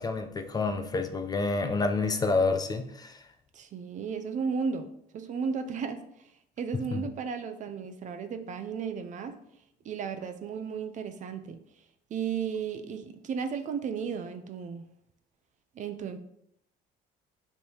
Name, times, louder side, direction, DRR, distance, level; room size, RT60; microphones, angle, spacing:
voice 1, 0.0-3.2 6.7-7.0, left 3 dB, 25° left, 7 dB, 0.4 m, -28 dB
voice 2, 3.5-4.9 5.1-6.3 6.6-9.4 9.8-11.6 12.1-14.9 15.8-16.2, right 6 dB, 45° right, 9 dB, 0.4 m, -34 dB
3.3 x 2.8 x 4.5 m, 0.75 s
cardioid pair, 110°, 17 cm